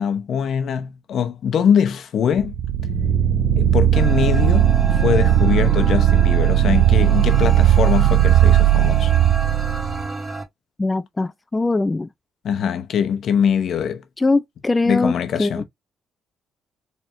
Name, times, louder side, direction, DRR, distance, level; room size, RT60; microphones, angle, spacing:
voice 1, 0.0-2.5 3.6-9.1 12.4-14.0 14.9-15.6, left 7 dB, 65° left, 0.8 m, -22 dB
sound 1, 2.4-10.1, right 11 dB, 65° right, 0.3 m, -17 dB
sound 2, 3.9-10.4, right 2 dB, 30° right, 1.7 m, -31 dB
voice 2, 10.8-12.1 14.2-15.1 15.4-15.6, left 3 dB, 20° left, 0.3 m, -21 dB
4.3 x 3.4 x 2.5 m
cardioid pair, 90°, 0 cm